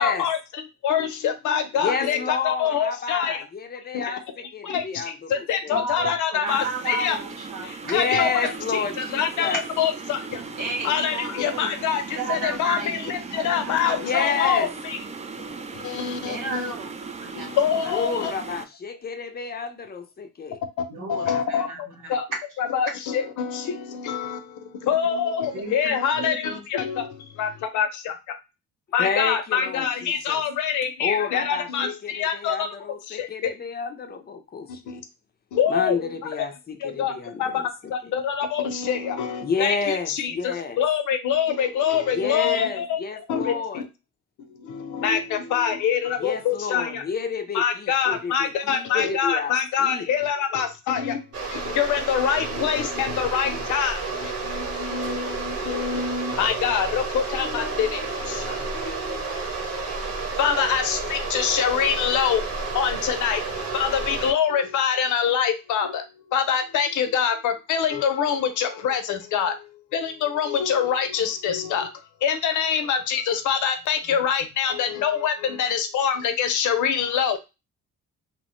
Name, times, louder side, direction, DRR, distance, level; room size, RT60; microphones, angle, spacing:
voice 1, 0.0-3.5 3.9-7.2 7.6-10.6 10.8-15.0 15.4-16.7 17.4-18.3 21.1-22.3 22.6-28.4 28.9-32.8 33.1-33.5 34.9-35.0 35.5-36.5 36.8-43.0 43.3-43.8 44.4-47.0 47.5-59.4 60.4-62.4 62.7-63.4 63.7-71.9 72.2-77.4, left 8 dB, 80° left, 0.6 m, -25 dB
voice 2, 1.8-5.8 7.8-9.6 14.0-14.7 17.9-20.6 29.0-30.4 31.0-35.0 35.7-37.7 38.0-38.1 39.4-40.8 42.1-43.8 46.2-50.0, left 5 dB, 30° left, 0.5 m, -30 dB
voice 3, 5.7-7.9 8.3-8.5 10.6-11.7 12.1-13.0 13.3-14.0 16.2-17.5 17.8-17.9 20.9-21.8 22.0-22.2 25.5-26.6, right 3 dB, 85° right, 1.5 m, -33 dB
sound 1, 6.5-18.7, right 4 dB, 25° right, 0.3 m, -37 dB
sound 2, 51.3-64.3, right 3 dB, 50° right, 1.1 m, -31 dB
3.0 x 2.0 x 2.9 m
cardioid pair, 90°, 30 cm